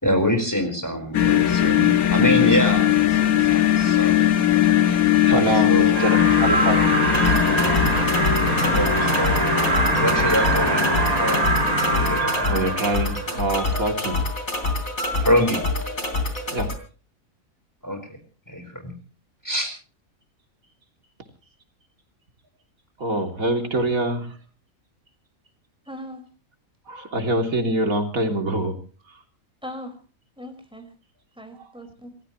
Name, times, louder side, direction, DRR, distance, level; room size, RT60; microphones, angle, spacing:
voice 1, 0.0-4.2 5.3-6.1 6.7-6.9 8.6-9.6 10.0-11.6 11.9-12.7 15.2-15.6 17.8-18.0 18.5-18.9 19.4-19.7, equal, 10° left, 5 dB, 4.5 m, -25 dB
sound 1, 1.1-12.2, left 10 dB, 85° left, 1.6 m, -20 dB
voice 2, 4.9-7.0 12.4-14.2 16.5-16.7 23.0-24.4 26.9-28.8 29.1-29.2, right 2 dB, 75° right, 4 dB, 3.6 m, -25 dB
sound 2, 5.9-13.4, right 3 dB, 30° right, 1.4 m, -24 dB
sound 3, 7.1-16.7, left 2 dB, 50° left, 3.6 m, -27 dB
voice 3, 25.8-26.2 29.6-30.0 30.4-30.9 31.3-32.1, equal, 5° right, 6 dB, 5.1 m, -39 dB
27.5 x 15.0 x 3.1 m, 0.38 s
omnidirectional pair, 1.5 m